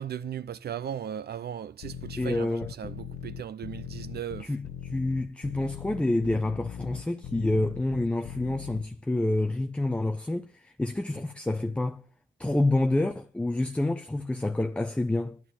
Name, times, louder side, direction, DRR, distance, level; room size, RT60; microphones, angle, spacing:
voice 1, 0.0-4.5, right 9 dB, 55° right, 0.5 m, -37 dB
sound 1, 1.8-8.8, left 9 dB, 85° left, 0.9 m, -39 dB
voice 2, 2.2-2.7 4.4-12.0 12.4-15.4, left 2 dB, 5° left, 0.5 m, -28 dB
11.0 x 6.7 x 8.8 m
cardioid pair, 130°, 20 cm